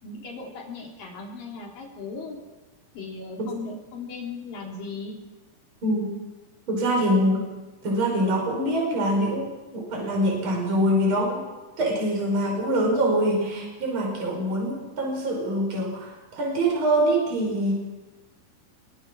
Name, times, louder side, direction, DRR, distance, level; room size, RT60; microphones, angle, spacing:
voice 1, 0.0-2.4 2.9-5.2 13.3-13.7, left 3 dB, 75° left, 0 dB, 5.1 m, -37 dB
voice 2, 5.8-6.1 6.7-7.5 7.8-11.4 11.8-17.7, right 1 dB, 35° right, -1 dB, 5.9 m, -24 dB
25.5 x 22.0 x 6.2 m, 1.2 s
omnidirectional pair, 4.0 m